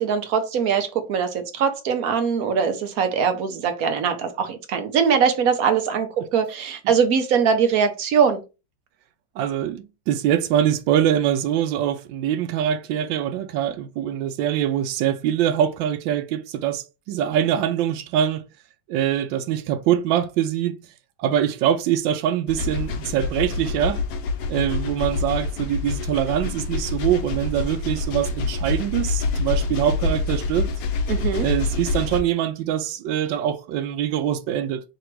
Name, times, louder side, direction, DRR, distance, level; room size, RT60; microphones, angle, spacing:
voice 1, 0.0-8.4 31.1-31.5, right 6 dB, 60° right, 1.0 m, -22 dB
voice 2, 9.4-18.4 18.9-20.8 21.2-24.0 24.5-30.7 31.4-34.8, right 10 dB, 90° right, 1.3 m, -23 dB
sound 1, 22.5-32.2, left 3 dB, 70° left, 0.9 m, -26 dB
3.4 x 2.9 x 4.5 m
omnidirectional pair, 2.0 m